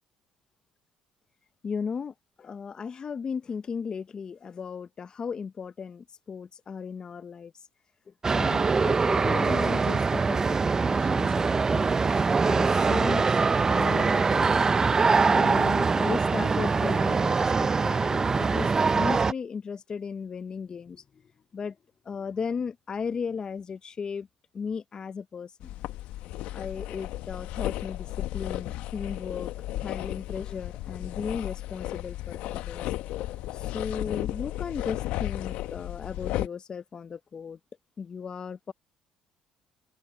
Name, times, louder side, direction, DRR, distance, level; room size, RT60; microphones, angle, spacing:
voice 1, 1.6-7.5 8.3-12.1 12.4-13.4 13.7-14.8 15.3-21.0 21.5-21.8 22.1-24.3 24.5-25.7 26.5-29.5 29.8-32.9 33.5-37.6 38.0-38.7, left 6 dB, 40° left, 0.7 m, -36 dB
sound 1, 8.2-19.3, right 4 dB, 25° right, 0.4 m, -23 dB
sound 2, 25.6-36.5, left 15 dB, 80° left, 0.9 m, -34 dB
supercardioid pair, 90°, 2 cm